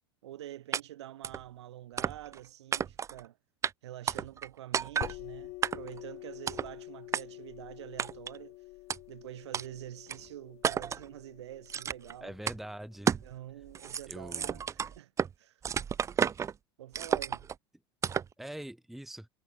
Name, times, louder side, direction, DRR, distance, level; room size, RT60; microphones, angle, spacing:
voice 1, 0.2-3.4 3.8-8.6 9.1-12.3 13.2-15.1 15.4-15.6 16.8-17.5, right 13 dB, 80° right, 4.6 m, -46 dB
sound 1, 0.7-0.8 1.2-1.4 2.0-2.4 2.7-3.2 3.6-3.7 4.1-4.5 4.7-5.1 5.6-6.0 6.5-6.7 7.1-7.2 8.0-8.4 8.9-9.0 9.5-9.6 10.1-10.2 10.6-11.0 11.7-12.1 12.5-12.6 13.1-13.3 13.6-15.3 15.6-16.5 16.9-17.5 18.0-18.3, right 7 dB, 20° right, 0.3 m, -31 dB
sound 2, 5.0-14.4, left 22 dB, 55° left, 0.7 m, -48 dB
voice 2, 12.2-13.2 14.1-14.6 18.4-19.3, right 1 dB, ahead, 0.8 m, -43 dB
hypercardioid pair, 90°, 14 cm